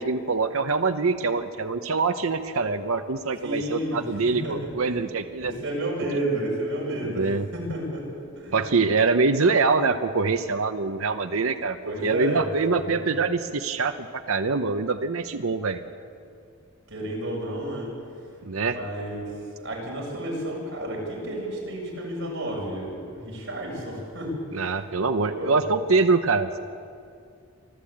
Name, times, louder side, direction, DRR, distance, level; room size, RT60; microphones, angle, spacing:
voice 1, 0.0-5.5 7.0-7.5 8.5-11.8 12.0-15.8 18.4-18.8 24.5-26.6, right 4 dB, 80° right, 7 dB, 0.8 m, -24 dB
voice 2, 3.4-5.0 5.4-8.0 8.3-8.7 11.8-12.4 12.7-13.1 16.9-17.9 18.7-19.2 19.5-24.6 25.3-25.6, right 1 dB, 60° right, -2 dB, 6.8 m, -31 dB
25.0 x 13.5 x 8.7 m, 2.4 s
head